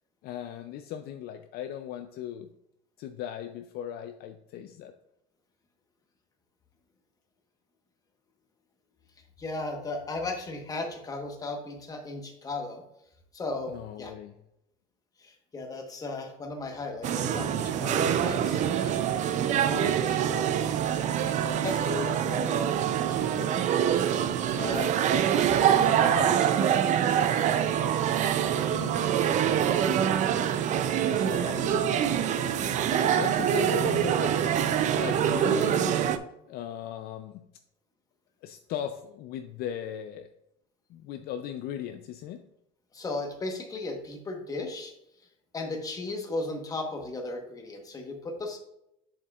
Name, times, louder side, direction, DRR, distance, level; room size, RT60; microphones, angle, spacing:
voice 1, 0.2-2.5 3.0-4.9 13.7-14.3 28.5-29.0 31.0-32.2 32.9-34.4 34.9-36.0 36.5-37.4 38.4-40.3 40.9-42.4, left 10 dB, 55° left, 7 dB, 0.4 m, -37 dB
voice 2, 9.4-12.8 13.3-14.1 15.2-19.0 19.5-20.7 21.4-23.6 24.5-25.0 25.7-26.8 31.1-31.7 42.9-44.9 45.5-48.6, left 2 dB, 20° left, 3 dB, 1.1 m, -36 dB
sound 1, 17.0-36.2, right 9 dB, 40° right, 0.4 m, -25 dB
7.4 x 6.9 x 2.4 m, 0.81 s
cardioid pair, 150°, 20 cm